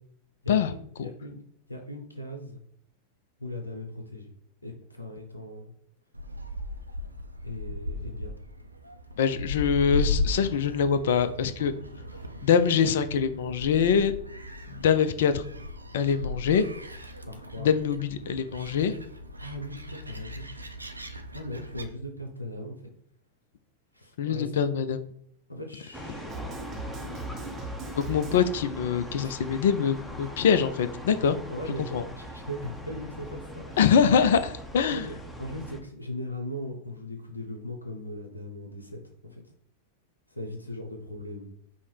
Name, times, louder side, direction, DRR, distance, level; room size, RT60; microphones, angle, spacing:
voice 1, 0.4-1.4 1.7-2.6 3.4-4.3 4.6-5.7 7.4-8.3 17.2-17.7 19.4-20.5 21.3-22.9 23.9-24.5 25.5-26.3 27.0-27.3 29.2-29.4 31.5-33.8 34.9-39.4 40.3-41.5, left 1 dB, 80° left, 3 dB, 0.7 m, -39 dB
Gull seagull, 6.1-21.9, left 2 dB, 85° right, 0.4 m, -36 dB
voice 2, 9.2-11.7 12.4-14.1 14.7-15.4 15.9-16.6 17.6-18.9 24.2-25.1 28.0-31.4 31.8-32.0 33.8-35.1, left 7 dB, 60° left, 12 dB, 0.4 m, -24 dB
sound 1, 25.9-35.8, equal, 5° left, 0.7 m, -41 dB
sound 2, 26.3-29.0, right 2 dB, 30° right, 0.7 m, -39 dB
5.4 x 2.1 x 4.6 m, 0.67 s
figure-of-eight pair, 90°, 0 cm